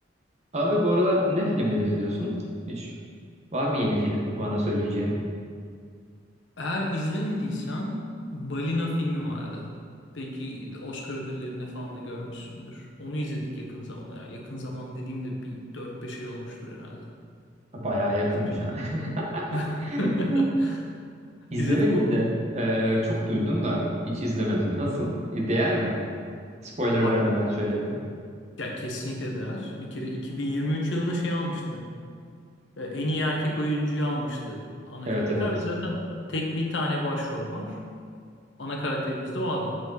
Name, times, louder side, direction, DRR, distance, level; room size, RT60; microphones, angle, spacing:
voice 1, 0.5-2.3 2.7-2.9 3.5-5.1 17.7-19.5 19.8-20.5 21.5-22.3 22.5-26.0 26.6-28.0 35.0-35.5, equal, 35° right, -3 dB, 1.3 m, -26 dB
voice 2, 6.6-8.1 8.3-9.7 10.1-17.1 18.3-18.9 19.5-20.8 21.2-22.1 27.0-27.3 28.6-31.9 32.8-37.8 38.6-39.8, left 1 dB, 75° left, -1 dB, 1.1 m, -31 dB
7.5 x 5.1 x 3.9 m, 2.2 s
head